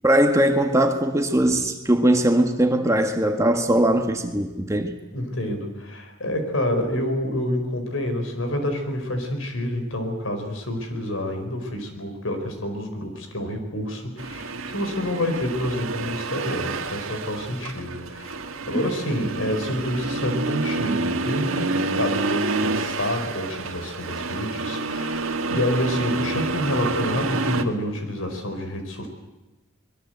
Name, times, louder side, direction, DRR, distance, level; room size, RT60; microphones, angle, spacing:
voice 1, 0.0-4.9 18.7-18.8, right 1 dB, 15° right, 5 dB, 1.5 m, -20 dB
voice 2, 5.1-29.1, left 1 dB, 75° left, 6 dB, 4.8 m, -28 dB
Accelerating revving vroom, 14.2-27.6, right 3 dB, 80° right, 1.7 m, -28 dB
24.0 x 22.5 x 8.0 m, 1.1 s
head